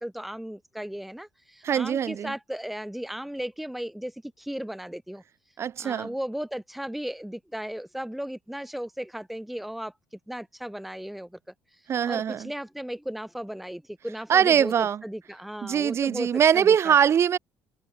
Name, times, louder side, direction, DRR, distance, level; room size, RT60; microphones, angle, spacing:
voice 1, 0.0-5.2 5.8-9.9 10.3-11.4 11.7-14.7 15.0-16.9, equal, ahead, 2.4 m, -36 dB
voice 2, 1.6-2.3 5.6-6.1 11.9-12.5 14.3-15.0 15.6-17.4, right 8 dB, 40° right, 4.7 m, -22 dB
cardioid pair, 145°, 7 cm